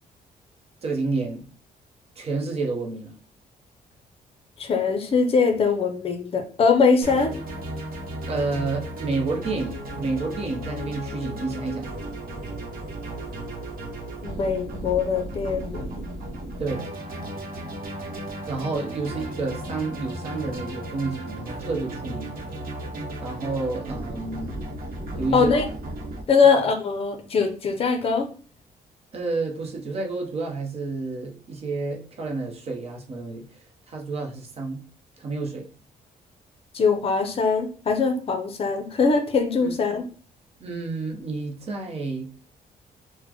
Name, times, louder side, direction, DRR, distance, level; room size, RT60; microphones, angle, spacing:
voice 1, 0.8-1.5 2.2-3.1 8.3-11.9 16.6-16.8 18.5-22.3 23.2-24.6 25.2-25.5 29.1-33.4 33.9-34.8 35.2-35.7 39.6-39.7 40.6-42.3, right 3 dB, 40° right, 1 dB, 0.8 m, -30 dB
voice 2, 4.6-7.4 14.2-16.0 25.3-25.7 26.3-28.3 36.7-40.0, left 5 dB, 40° left, 6 dB, 0.6 m, -22 dB
sound 1, 7.0-26.2, right 1 dB, 70° right, 0.9 m, -35 dB
4.0 x 2.1 x 2.9 m, 0.39 s
cardioid pair, 155°, 16 cm